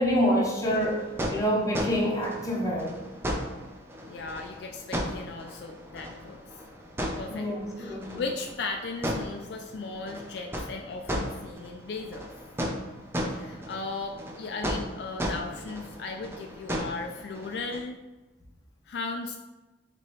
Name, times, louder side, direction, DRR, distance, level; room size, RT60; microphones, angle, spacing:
voice 1, 0.0-3.0 7.3-8.2, equal, 15° left, -3 dB, 0.7 m, -27 dB
sound 1, 0.6-17.8, equal, 10° right, 0.4 m, -36 dB
voice 2, 4.1-6.4 7.2-7.5 7.8-12.3 13.3-18.0 18.9-19.4, left 3 dB, 60° left, 3 dB, 0.3 m, -37 dB
4.6 x 3.0 x 3.0 m, 1.1 s
head